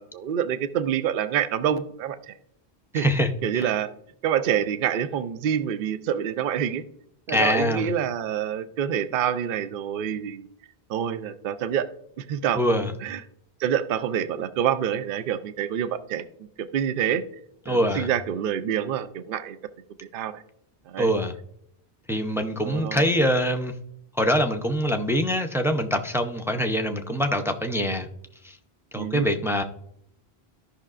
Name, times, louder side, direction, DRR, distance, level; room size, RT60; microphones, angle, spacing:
voice 1, 0.0-2.3 2.9-3.1 3.4-3.9 4.2-6.8 7.3-10.5 10.9-11.9 12.2-13.2 13.6-16.3 16.6-17.2 17.7-19.6 20.1-20.4 20.9-21.1 22.6-23.1 28.9-29.3, right 9 dB, 60° right, 12 dB, 0.7 m, -27 dB
voice 2, 2.9-3.7 7.3-7.9 12.6-12.9 17.7-18.1 21.0-21.3 22.1-23.7 24.2-28.1 28.4-28.6 28.9-29.6, equal, 5° right, 5 dB, 0.4 m, -24 dB
14.5 x 5.7 x 2.4 m, 0.72 s
omnidirectional pair, 1.1 m